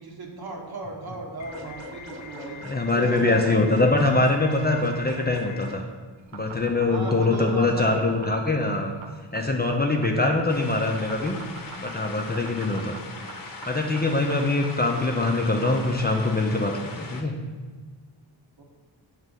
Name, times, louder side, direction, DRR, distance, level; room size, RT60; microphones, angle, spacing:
voice 1, 0.0-3.9 6.9-8.2 18.6-18.7, right 2 dB, 55° right, 0 dB, 1.2 m, -35 dB
sound 1, 1.4-5.8, left 3 dB, 80° left, 0.8 m, -41 dB
voice 2, 2.6-5.8 6.3-8.9 9.3-11.4 11.8-12.9 13.5-17.3, left 2 dB, 20° left, 1 dB, 0.5 m, -23 dB
sound 2, 6.2-15.8, right 6 dB, 85° right, 0.6 m, -43 dB
sound 3, 10.5-17.2, left 3 dB, 50° left, 0.8 m, -40 dB
6.1 x 3.3 x 5.2 m, 1.4 s
wide cardioid pair, 80°, 45 cm